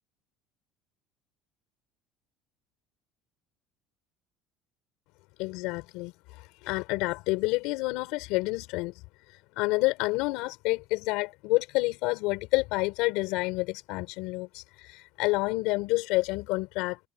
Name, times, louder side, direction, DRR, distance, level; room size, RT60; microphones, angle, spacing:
voice 1, 5.4-8.9 9.3-17.0, left 22 dB, 75° left, 4.3 m, -29 dB
cardioid pair, 165°, 0 cm